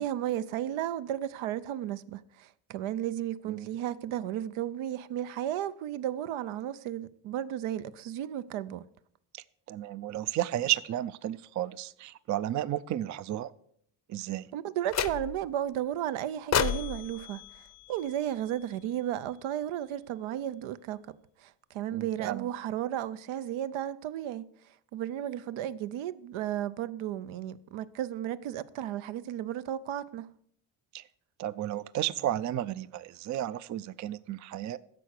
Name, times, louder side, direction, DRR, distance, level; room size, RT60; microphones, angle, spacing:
voice 1, 0.0-8.9 14.5-17.4 17.9-21.1 21.4-24.4 24.9-30.3, right 11 dB, 80° right, 0.7 m, -34 dB
voice 2, 9.3-13.5 14.1-14.5 21.9-22.5 30.9-31.1 31.4-34.8, right 13 dB, 40° right, 0.4 m, -33 dB
sound 1, 14.9-15.6 16.5-18.8, left 8 dB, 35° left, 0.6 m, -33 dB
10.5 x 6.6 x 6.5 m
cardioid pair, 110°, 48 cm